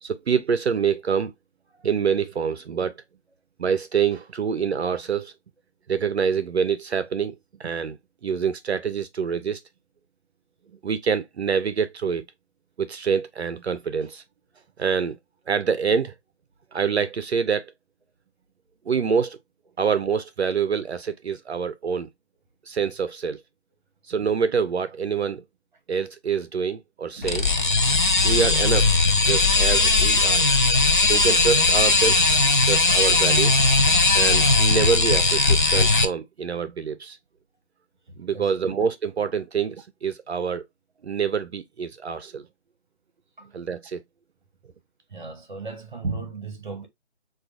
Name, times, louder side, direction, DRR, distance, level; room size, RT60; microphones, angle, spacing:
voice 1, 0.0-1.3 1.8-2.9 3.6-5.3 5.9-7.3 7.6-8.0 8.2-9.6 10.8-12.2 12.8-14.2 14.8-15.2 15.5-16.1 16.7-17.6 18.9-19.4 19.8-22.1 22.7-23.4 24.1-25.4 25.9-27.5 28.2-28.9 29.2-30.4 31.0-32.2 32.6-33.6 34.1-37.2 38.2-40.6 41.0-42.5 43.5-44.0, right 6 dB, 65° right, 0.5 m, -26 dB
sound 1, 27.2-36.1, left 3 dB, 45° left, 0.4 m, -19 dB
voice 2, 38.1-38.5 43.4-43.5 45.1-46.9, right 4 dB, 40° right, 0.9 m, -35 dB
4.6 x 2.3 x 2.4 m
figure-of-eight pair, 165°, 36 cm